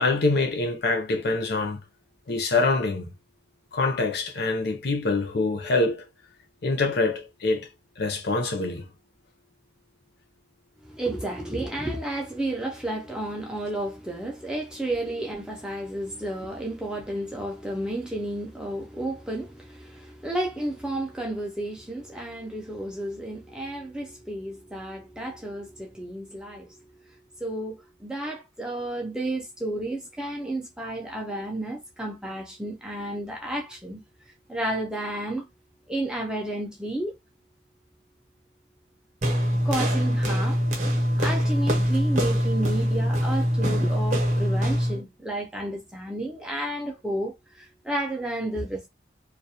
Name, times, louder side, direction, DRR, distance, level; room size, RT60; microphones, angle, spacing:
voice 1, 0.0-1.8 2.3-3.1 3.7-6.0 6.6-7.7 8.0-8.9, left 3 dB, 55° left, 0.5 m, -25 dB
voice 2, 10.8-34.0 34.5-35.5 35.9-37.2 39.6-40.6 41.2-48.9, right 1 dB, 5° right, 0.3 m, -32 dB
sound 1, 39.2-45.0, equal, 40° right, 0.7 m, -23 dB
2.3 x 2.1 x 2.7 m
head